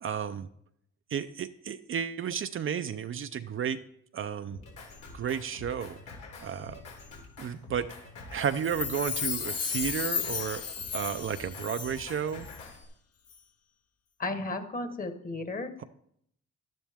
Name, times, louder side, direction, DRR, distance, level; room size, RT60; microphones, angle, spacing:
voice 1, 0.0-0.5 1.1-3.8 4.1-4.6 5.1-6.0 6.4-6.8 7.4-7.9 8.3-12.5, right 8 dB, 45° right, 9 dB, 0.5 m, -32 dB
Drum kit, 4.5-12.8, left 3 dB, 90° left, 3.3 m, -47 dB
Chime, 8.5-12.2 12.5-12.6, left 7 dB, 55° left, 1.0 m, -34 dB
voice 2, 14.2-15.7, left 2 dB, 30° left, 9 dB, 1.3 m, -34 dB
11.5 x 10.5 x 3.6 m, 0.71 s
cardioid pair, 90°, 30 cm